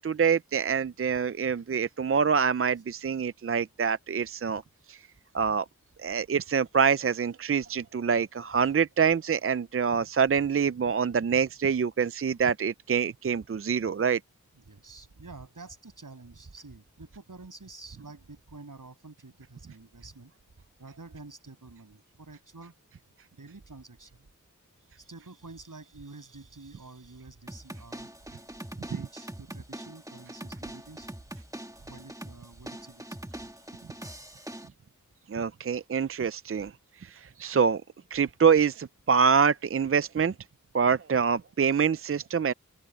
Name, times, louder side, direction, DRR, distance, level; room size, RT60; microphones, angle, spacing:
voice 1, 0.0-4.6 4.9-5.0 5.3-5.6 6.0-14.2 35.3-36.7 37.0-37.8 38.1-40.3 40.7-42.5, right 6 dB, 45° right, 0.5 m, -25 dB
voice 2, 14.5-20.3 20.8-22.8 23.3-24.3 24.8-28.1 28.9-31.1 31.7-33.2, right 3 dB, 75° right, 6.9 m, -48 dB
sound 1, 27.5-34.7, right 1 dB, 10° right, 1.9 m, -43 dB
open air
wide cardioid pair, 55°, 32 cm